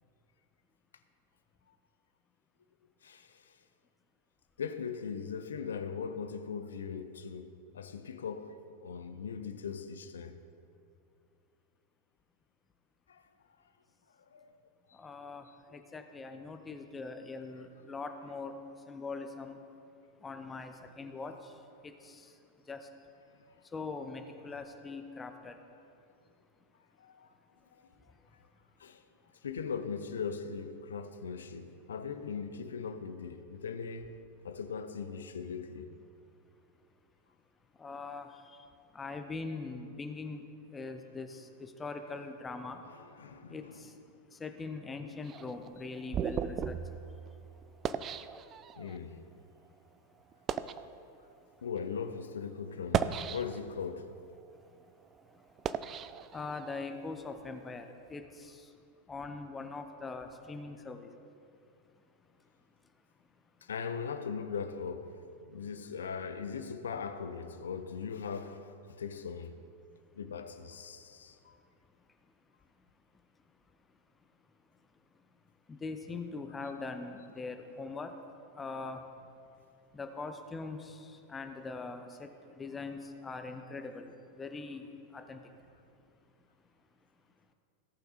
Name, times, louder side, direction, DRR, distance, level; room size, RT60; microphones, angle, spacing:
voice 1, 3.0-3.5 4.6-10.4 13.1-13.2 14.3-14.5 14.9-15.0 27.0-27.3 27.7-27.9 28.8-29.0 29.4-34.2 34.4-35.9 43.0-43.7 48.8-49.3 51.6-54.2 63.6-69.6 70.1-71.6, left 6 dB, 65° left, 0.6 m, -40 dB
voice 2, 14.9-19.6 20.2-23.1 23.5-25.6 26.6-26.7 28.0-28.5 37.7-43.0 43.5-47.8 48.2-48.4 51.4-51.5 54.6-54.9 55.2-61.2 61.9-62.5 62.8-62.9 63.2-63.6 70.1-70.2 71.5-72.3 72.8-72.9 73.1-73.5 74.2-79.3 79.9-85.7 87.0-87.1, left 3 dB, 15° left, 0.8 m, -43 dB
sound 1, 45.2-49.0 49.7-49.8 50.3-50.9 51.6-51.8 52.7-53.8 54.3-56.9, right 8 dB, 30° right, 0.4 m, -36 dB
17.5 x 5.9 x 4.2 m
figure-of-eight pair, 90°, 0 cm